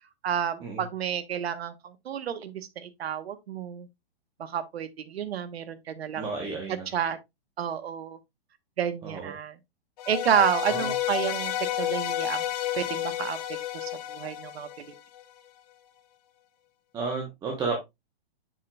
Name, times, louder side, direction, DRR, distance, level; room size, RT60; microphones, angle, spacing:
voice 1, 0.2-3.9 4.4-7.2 7.6-8.2 8.8-9.6 10.1-12.5 12.7-13.4 13.7-14.9, right 8 dB, 75° right, 1.1 m, -30 dB
voice 2, 6.1-6.9 9.0-9.3 10.7-10.9 16.9-17.8, right 4 dB, 10° right, 0.9 m, -32 dB
sound 1, 10.0-15.2, left 12 dB, 40° left, 0.8 m, -31 dB
7.4 x 5.7 x 2.2 m
hypercardioid pair, 165°, 31 cm